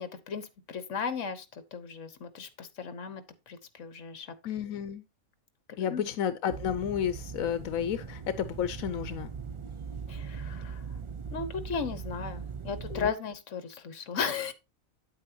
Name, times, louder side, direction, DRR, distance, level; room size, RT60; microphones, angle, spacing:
voice 1, 0.0-4.3 5.8-6.1 10.1-10.8 11.3-14.5, left 6 dB, 65° left, 1.5 m, -36 dB
voice 2, 4.4-5.0 5.8-9.3 12.9-13.1, left 9 dB, 90° left, 1.1 m, -31 dB
sound 1, 6.5-13.1, right 6 dB, 45° right, 0.4 m, -40 dB
9.1 x 8.5 x 2.8 m
omnidirectional pair, 1.4 m